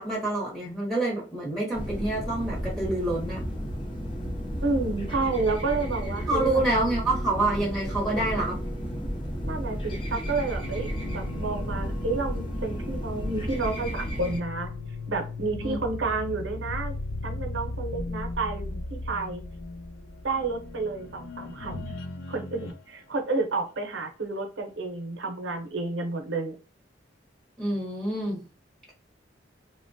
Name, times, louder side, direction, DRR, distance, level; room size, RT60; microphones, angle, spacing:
voice 1, 0.0-3.4 6.3-8.6 15.6-15.8 27.6-28.4, right 2 dB, ahead, -5 dB, 0.8 m, -27 dB
sound 1, 1.7-14.4, equal, 25° left, 0.5 m, -33 dB
voice 2, 4.6-6.6 9.4-14.7 15.1-19.4 20.2-21.8 22.3-26.5, right 3 dB, 80° right, 4 dB, 0.7 m, -30 dB
sound 2, 10.6-22.9, left 2 dB, 90° left, 0.5 m, -37 dB
3.0 x 2.1 x 2.6 m, 0.34 s
head